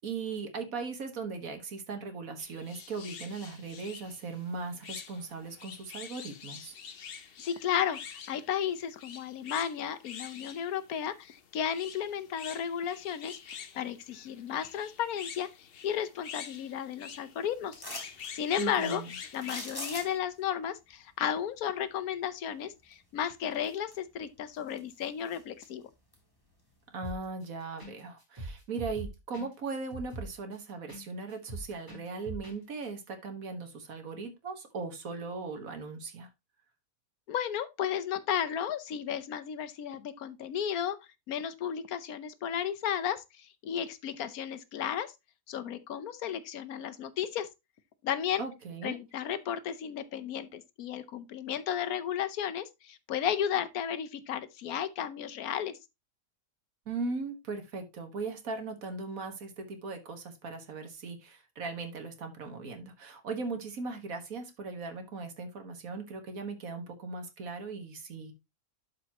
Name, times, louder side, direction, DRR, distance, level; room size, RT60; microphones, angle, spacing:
voice 1, 0.0-6.7 18.6-19.2 26.9-36.3 48.4-49.0 56.9-68.3, right 4 dB, 65° right, 1.8 m, -38 dB
sound 1, 2.4-20.2, left 7 dB, 50° left, 0.8 m, -47 dB
voice 2, 7.4-17.8 18.3-19.0 19.3-25.8 37.3-41.0 41.3-45.1 45.5-47.5 48.0-48.4 48.8-55.7, left 9 dB, 75° left, 1.2 m, -33 dB
sound 2, 17.7-18.3 19.3-20.4 22.9-23.0 23.5-24.2 24.6-25.7 26.1-26.2, left 1 dB, 15° left, 2.9 m, -42 dB
sound 3, 27.0-27.4 27.8-27.9 28.2-31.0 31.3-32.6 32.8-32.9, right 1 dB, 15° right, 3.8 m, -41 dB
12.0 x 5.0 x 2.9 m
omnidirectional pair, 1.6 m